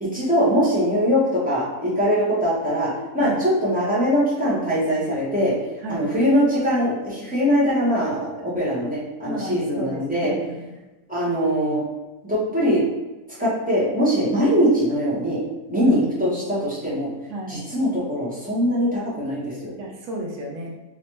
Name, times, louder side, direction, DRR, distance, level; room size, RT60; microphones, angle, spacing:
voice 1, 0.0-5.5 5.9-10.3 11.1-11.8 12.3-12.8 13.4-15.4 15.7-17.1 17.5-19.7, equal, 5° right, -9 dB, 1.0 m, -22 dB
voice 2, 9.2-10.7 15.8-16.7 17.3-17.8 19.8-20.8, right 2 dB, 80° right, -2 dB, 1.3 m, -33 dB
3.3 x 3.1 x 3.0 m, 1.1 s
omnidirectional pair, 1.6 m